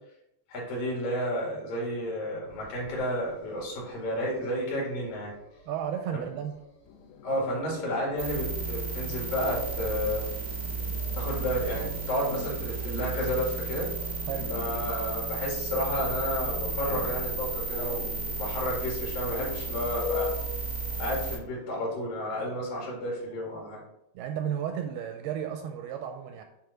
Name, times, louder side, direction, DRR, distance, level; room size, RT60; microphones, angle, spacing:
voice 1, 0.5-5.3 7.2-10.3 11.2-13.9 14.5-20.3 21.0-23.8, equal, 60° left, -3 dB, 3.5 m, -31 dB
Dog, 2.4-18.0, equal, 45° left, 1.9 m, -49 dB
voice 2, 5.7-6.6 14.2-14.6 24.2-26.4, right 9 dB, 80° right, 6 dB, 2.3 m, -33 dB
sound 1, 6.9-23.7, left 7 dB, 80° left, 2.5 m, -44 dB
sound 2, 8.2-21.4, right 4 dB, 50° right, 1.0 m, -33 dB
10.0 x 3.6 x 3.9 m, 0.80 s
omnidirectional pair, 4.7 m